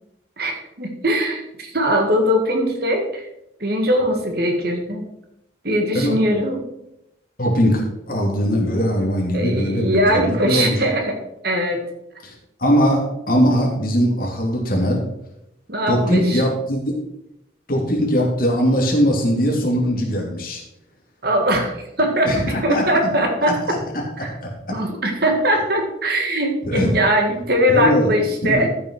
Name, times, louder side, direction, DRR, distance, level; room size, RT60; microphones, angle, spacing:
voice 1, 0.4-3.3 3.6-5.0 5.6-6.6 9.3-11.1 11.4-11.8 15.7-16.4 21.2-23.6 24.2-24.3 24.7-28.7, equal, 55° right, 3 dB, 1.9 m, -20 dB
voice 2, 5.9-6.5 7.4-10.8 12.2-12.3 12.6-15.0 15.9-16.9 17.7-20.6 22.2-22.8 23.4-24.5 26.6-26.9 27.7-28.1 28.4-28.6, equal, 50° left, -1 dB, 2.9 m, -20 dB
13.5 x 6.2 x 4.8 m, 0.83 s
head